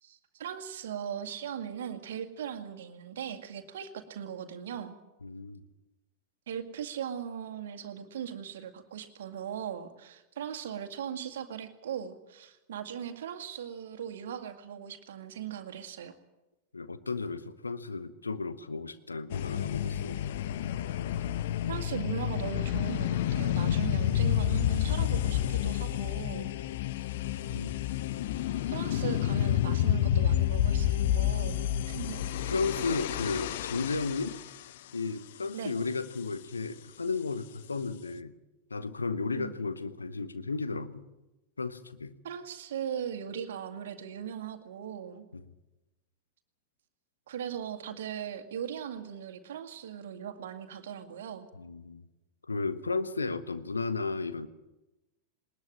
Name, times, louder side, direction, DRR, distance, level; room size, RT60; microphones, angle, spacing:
voice 1, 0.0-5.0 6.5-16.1 21.6-26.5 28.7-32.2 35.5-35.8 39.3-39.5 42.2-45.3 47.3-51.5, right 8 dB, 60° right, 7 dB, 2.1 m, -39 dB
voice 2, 5.2-5.6 16.7-20.2 27.2-27.8 32.5-34.4 34.9-38.3 38.7-41.0 41.6-42.1 45.3-45.4 51.6-52.0 52.5-54.5, left 4 dB, 75° left, 11 dB, 1.3 m, -34 dB
sound 1, 19.3-34.6, left 11 dB, 55° left, 0.9 m, -29 dB
20.5 x 20.0 x 7.5 m, 1.0 s
figure-of-eight pair, 90°, 0 cm